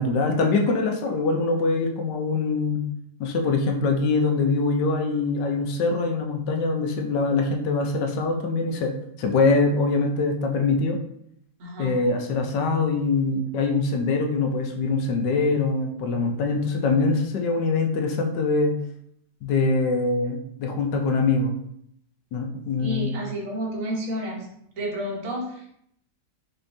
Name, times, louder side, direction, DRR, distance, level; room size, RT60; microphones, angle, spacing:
voice 1, 0.0-2.8 3.2-8.9 9.2-11.0 11.8-18.8 19.4-21.5 22.3-23.2, left 3 dB, 80° left, 3 dB, 1.3 m, -23 dB
voice 2, 11.6-11.9 22.8-25.7, right 1 dB, 50° right, -2 dB, 1.5 m, -31 dB
5.3 x 3.5 x 2.7 m, 0.71 s
omnidirectional pair, 1.9 m